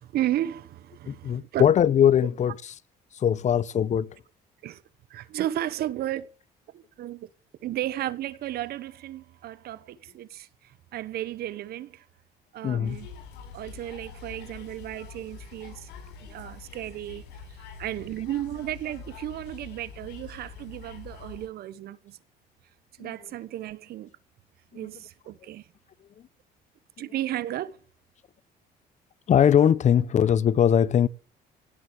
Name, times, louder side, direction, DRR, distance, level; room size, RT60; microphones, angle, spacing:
voice 1, 0.0-2.0 4.6-4.8 5.1-6.3 6.7-7.3 7.6-12.0 12.5-13.1 13.5-15.9 16.2-17.2 17.8-22.2 23.0-24.1 24.7-25.7 27.0-27.8, right 13 dB, 65° right, 1.0 m, -34 dB
voice 2, 1.1-2.5 3.1-4.2 12.6-13.0 23.0-23.1 24.7-24.9 29.3-31.1, left 9 dB, 45° left, 0.8 m, -21 dB
sound 1, 12.8-21.5, left 5 dB, 90° left, 6.1 m, -45 dB
17.0 x 7.6 x 8.2 m
cardioid pair, 110°, 17 cm